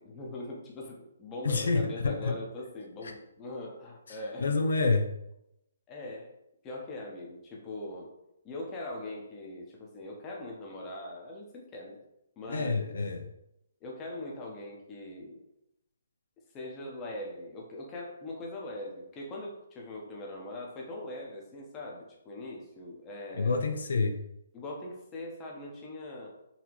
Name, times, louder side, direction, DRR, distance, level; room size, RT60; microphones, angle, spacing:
voice 1, 0.0-4.6 5.9-6.4 6.6-8.1 8.4-12.0 12.4-12.9 13.8-15.4 16.5-23.6 24.5-26.4, left 1 dB, 15° left, -1 dB, 0.7 m, -41 dB
voice 2, 1.4-2.4 3.0-3.1 4.1-5.1 12.5-13.2 23.3-24.2, left 3 dB, 70° left, 6 dB, 0.5 m, -28 dB
4.0 x 2.8 x 2.9 m, 0.84 s
hypercardioid pair, 160°, 0 cm